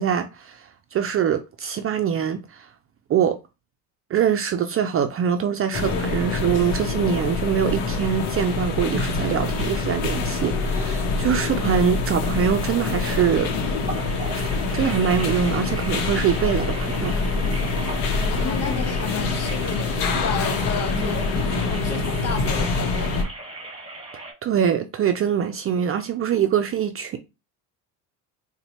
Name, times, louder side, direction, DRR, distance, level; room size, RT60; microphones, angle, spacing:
voice 1, 0.0-2.7 3.1-3.4 4.1-13.5 14.7-17.2 24.1-27.2, right 8 dB, 35° right, 0.4 m, -23 dB
sound 1, 5.7-23.2, left 3 dB, 85° left, 0.8 m, -25 dB
sound 2, 9.9-24.3, right 2 dB, 15° right, 1.2 m, -39 dB
voice 2, 18.3-21.2 21.6-23.2, left 7 dB, 40° left, 0.8 m, -32 dB
4.1 x 2.2 x 2.7 m
supercardioid pair, 85°, 41 cm